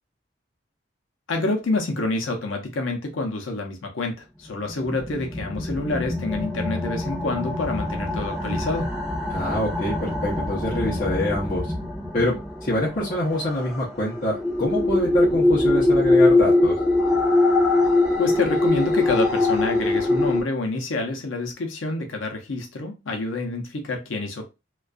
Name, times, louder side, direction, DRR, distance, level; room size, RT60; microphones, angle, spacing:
voice 1, 1.3-8.9 18.2-24.5, left 2 dB, 85° left, 0.6 m, -27 dB
sound 1, 4.7-20.4, left 2 dB, ahead, 0.6 m, -23 dB
voice 2, 9.3-11.7 12.1-16.7, left 1 dB, 45° left, 0.7 m, -25 dB
2.4 x 2.3 x 2.3 m
head